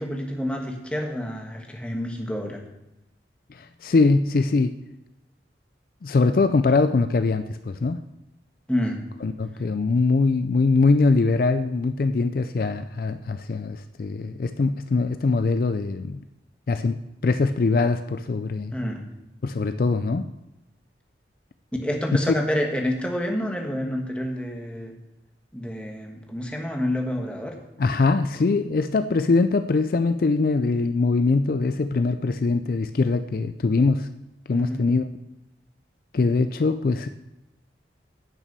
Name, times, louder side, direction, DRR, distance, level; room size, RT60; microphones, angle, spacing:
voice 1, 0.0-2.6 8.7-9.0 18.7-19.0 21.8-24.9 25.5-27.5 34.5-34.8, equal, 5° left, 1 dB, 1.3 m, -28 dB
voice 2, 3.5-4.7 6.0-8.0 9.2-16.2 16.7-17.0 17.2-18.7 19.4-20.3 27.8-34.1 34.5-35.1 36.1-37.1, left 3 dB, 50° left, 10 dB, 0.4 m, -22 dB
10.5 x 6.0 x 6.8 m, 0.91 s
head